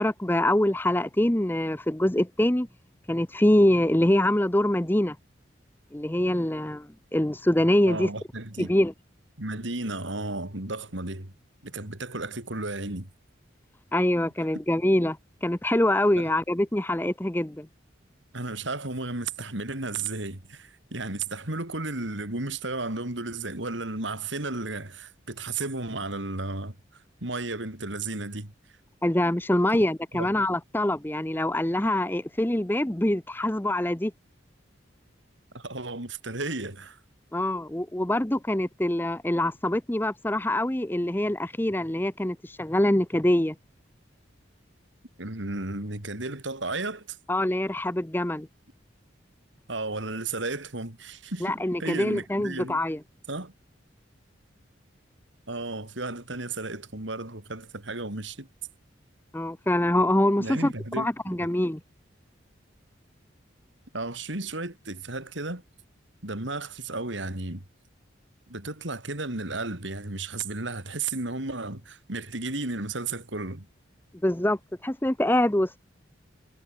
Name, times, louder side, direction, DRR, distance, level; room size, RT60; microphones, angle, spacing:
voice 1, 0.0-2.7 3.1-5.2 5.9-8.1 8.6-8.9 13.9-17.7 29.0-34.1 37.3-43.5 47.3-48.5 51.4-53.0 59.3-61.8 74.2-75.8, left 1 dB, 10° left, 0.7 m, -24 dB
voice 2, 7.9-8.7 9.4-11.3 11.6-13.1 16.2-16.3 18.3-26.8 27.2-28.5 29.7-29.8 30.1-30.3 35.5-37.0 45.2-47.2 49.7-52.8 53.3-53.5 55.5-58.5 60.4-61.5 63.9-65.6 66.2-67.6 68.5-73.7, right 2 dB, 75° right, 3.7 m, -33 dB
head